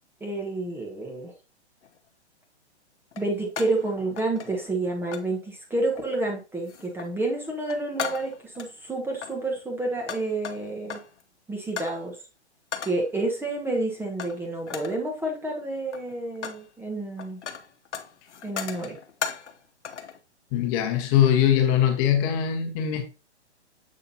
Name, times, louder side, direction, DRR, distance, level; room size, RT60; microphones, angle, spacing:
voice 1, 0.2-1.3 3.2-11.0 11.5-12.2 12.8-17.4 18.4-19.0, right 2 dB, 5° right, 1.2 m, -29 dB
sound 1, 1.8-2.0 3.1-3.9 4.2-4.8 5.1-5.3 5.9-6.3 6.6-7.2 7.5-8.7 9.1-11.2 11.8-12.0 12.7-13.1 14.2-14.4 14.7-15.1 15.8-16.7 16.9-19.6 19.9-20.2, left 7 dB, 80° left, 0.9 m, -37 dB
voice 2, 20.5-23.0, left 10 dB, 30° left, 1.2 m, -21 dB
7.4 x 6.3 x 2.8 m
hypercardioid pair, 130°, 34 cm